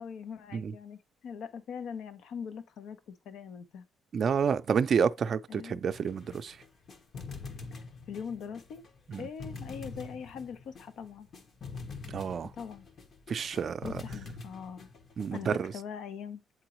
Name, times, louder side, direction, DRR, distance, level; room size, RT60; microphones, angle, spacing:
voice 1, 0.0-3.8 5.5-5.8 8.1-8.8 9.2-11.3 12.5-12.9 13.3-13.5 13.8-14.9 15.3-16.4, left 7 dB, 75° left, 0.8 m, -42 dB
voice 2, 4.1-6.6 9.1-9.3 12.1-12.5 13.3-13.9 15.2-15.7, right 6 dB, 55° right, 0.4 m, -29 dB
sound 1, 5.9-15.7, left 4 dB, 55° left, 1.1 m, -45 dB
8.0 x 3.9 x 3.0 m
cardioid pair, 90°, 0 cm